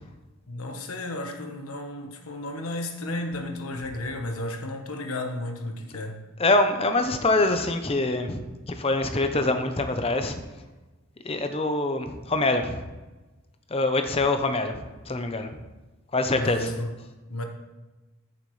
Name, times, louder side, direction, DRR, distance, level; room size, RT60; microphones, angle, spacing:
voice 1, 0.5-6.1 16.4-16.9 17.3-17.4, left 1 dB, 85° left, 4 dB, 1.3 m, -33 dB
voice 2, 6.4-10.3 11.2-12.8 13.7-15.6 16.1-16.7, left 2 dB, 25° left, 7 dB, 0.8 m, -25 dB
14.0 x 7.3 x 3.3 m, 1.2 s
head